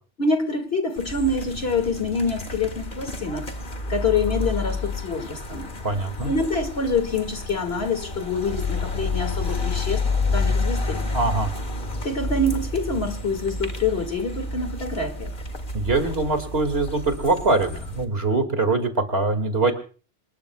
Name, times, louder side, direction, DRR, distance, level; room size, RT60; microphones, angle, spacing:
voice 1, 0.2-3.5 3.9-5.7 6.2-10.0 10.3-11.1 12.0-15.3, left 3 dB, 65° left, 2.5 m, -26 dB
sound 1, 1.0-18.0, left 3 dB, 50° left, 2.0 m, -30 dB
voice 2, 5.8-6.3 11.1-11.5 15.7-19.7, right 3 dB, 65° right, 2.5 m, -23 dB
26.5 x 20.5 x 2.3 m
omnidirectional pair, 1.1 m